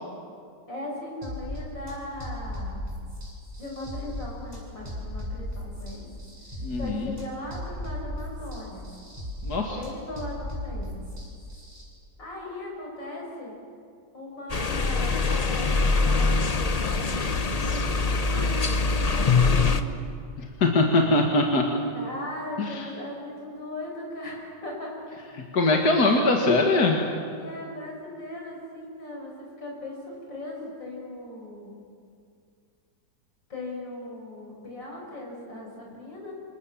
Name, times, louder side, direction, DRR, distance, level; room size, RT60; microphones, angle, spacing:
voice 1, 0.7-2.8 3.6-6.1 6.8-8.9 9.7-11.1 12.2-13.5 14.1-17.2 17.6-19.8 21.9-25.0 27.3-31.8 33.5-36.3, left 1 dB, 80° left, -1 dB, 7.3 m, -38 dB
sound 1, 1.2-11.8, left 1 dB, 20° right, 7.6 m, -37 dB
voice 2, 6.6-7.1 9.4-9.8 20.4-21.7 22.6-22.8 25.5-27.0, left 2 dB, 60° left, 1 dB, 2.4 m, -22 dB
sound 2, 14.5-19.8, left 4 dB, 30° left, 0.8 m, -23 dB
27.0 x 26.5 x 7.2 m, 2.4 s
omnidirectional pair, 1.9 m